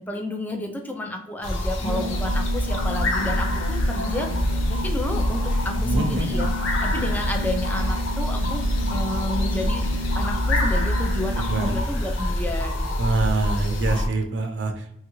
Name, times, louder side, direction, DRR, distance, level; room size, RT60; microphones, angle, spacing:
voice 1, 0.0-4.3 4.7-6.5 6.8-9.9 10.1-12.9, left 1 dB, 10° left, 3 dB, 0.3 m, -31 dB
sound 1, 1.4-14.1, left 1 dB, 80° left, 0.5 m, -25 dB
Organ, 1.8-12.0, equal, 30° left, 1.0 m, -34 dB
voice 2, 5.8-6.3 11.5-11.7 13.0-14.9, right 3 dB, 65° right, 5 dB, 0.5 m, -25 dB
3.1 x 2.4 x 3.0 m, 0.75 s
head